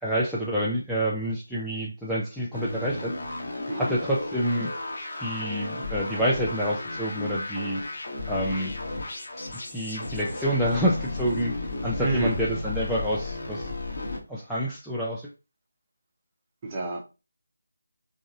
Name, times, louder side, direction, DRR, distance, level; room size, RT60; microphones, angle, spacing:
voice 1, 0.0-3.1 3.8-4.7 5.2-7.8 8.3-8.7 9.7-11.5 11.8-13.7 14.3-15.3, equal, ahead, 0.4 m, -28 dB
sound 1, 2.5-14.2, left 2 dB, 50° left, 1.1 m, -34 dB
voice 2, 3.7-4.0 12.0-12.4 16.6-17.0, right 2 dB, 20° right, 0.7 m, -29 dB
3.8 x 2.6 x 2.5 m
figure-of-eight pair, 160°, 0 cm